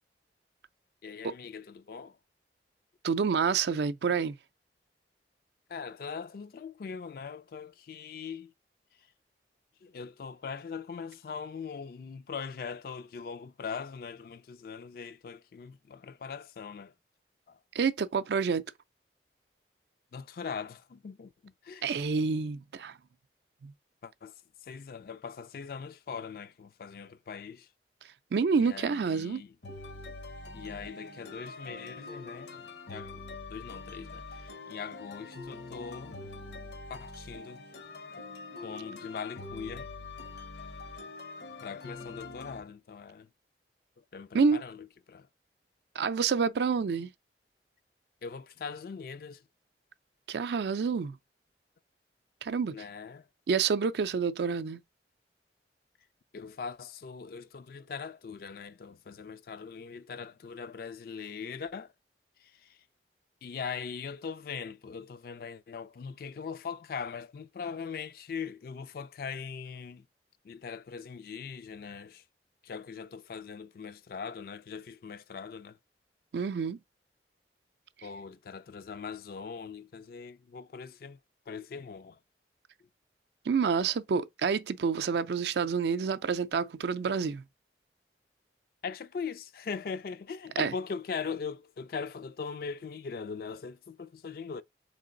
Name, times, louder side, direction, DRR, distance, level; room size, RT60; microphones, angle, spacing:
voice 1, 1.0-2.2 5.7-8.5 9.8-16.9 17.5-17.6 20.1-21.8 24.0-24.4 24.6-27.7 28.6-29.6 30.5-33.2 33.5-36.2 36.9-37.6 38.6-39.9 41.6-43.3 44.1-45.3 48.2-49.4 52.7-53.3 56.3-61.9 62.4-62.8 63.4-70.1 70.4-72.2 72.6-75.8 78.0-81.2 81.5-82.2 88.8-94.6, left 6 dB, 55° left, 0.3 m, -41 dB
voice 2, 3.0-4.3 17.7-18.6 21.8-22.9 23.6-23.7 28.3-29.4 44.3-44.6 46.0-47.1 50.3-51.2 52.4-52.8 53.5-54.8 76.3-76.8 83.5-87.4 90.6-90.7, right 5 dB, 70° right, 0.4 m, -28 dB
sound 1, 29.6-42.6, left 3 dB, 75° left, 0.9 m, -44 dB
3.8 x 3.3 x 3.8 m
head